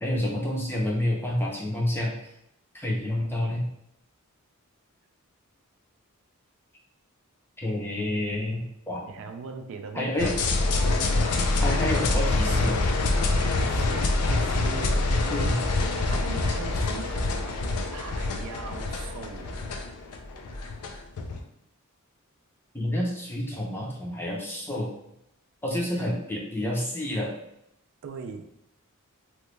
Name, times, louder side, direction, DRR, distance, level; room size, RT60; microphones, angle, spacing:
voice 1, 0.0-2.1 2.7-3.6 7.6-9.1 9.9-10.4 11.6-12.8 15.3-15.6 22.7-24.9 25.6-27.3, left 1 dB, 10° left, -3 dB, 0.6 m, -29 dB
voice 2, 9.1-10.5 13.5-15.7 16.0-19.5 28.0-28.5, right 5 dB, 60° right, 6 dB, 0.3 m, -40 dB
sound 1, 10.2-21.4, left 2 dB, 80° left, 0.4 m, -26 dB
3.0 x 2.2 x 3.1 m, 0.80 s
head